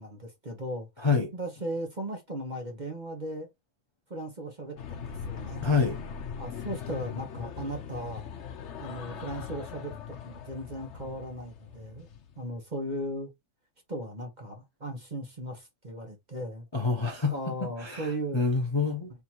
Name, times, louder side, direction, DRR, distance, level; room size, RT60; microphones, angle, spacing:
voice 1, 0.0-0.9 1.3-3.5 4.1-5.6 6.4-8.2 8.8-12.1 12.4-13.3 13.9-16.7 17.3-18.5, right 1 dB, 35° right, 1.0 m, -37 dB
voice 2, 1.0-1.3 5.6-6.0 16.7-19.1, left 4 dB, 25° left, 0.7 m, -27 dB
sound 1, 4.8-12.4, left 7 dB, 55° left, 0.9 m, -40 dB
3.6 x 2.8 x 4.3 m
omnidirectional pair, 1.6 m